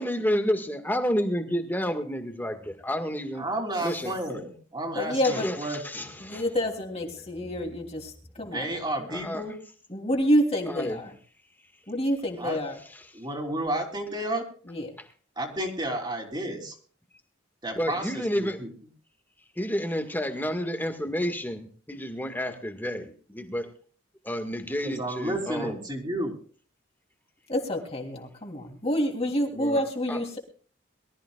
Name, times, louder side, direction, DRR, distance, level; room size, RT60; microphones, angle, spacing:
voice 1, 0.0-3.4 3.8-4.4 5.3-6.4 9.0-9.4 10.7-11.0 17.8-18.6 19.6-23.7 24.2-25.8 29.6-29.8 30.1-30.2, equal, 10° left, 1.8 m, -30 dB
voice 2, 3.4-6.1 8.4-9.6 12.4-12.6 13.1-14.5 15.3-16.8 17.6-18.7 24.8-26.3, right 1 dB, 25° right, 3.3 m, -32 dB
voice 3, 4.9-5.5 6.2-8.8 9.9-11.1 11.9-12.8 14.7-14.9 27.5-30.4, equal, 30° left, 3.2 m, -28 dB
23.5 x 14.0 x 2.4 m
head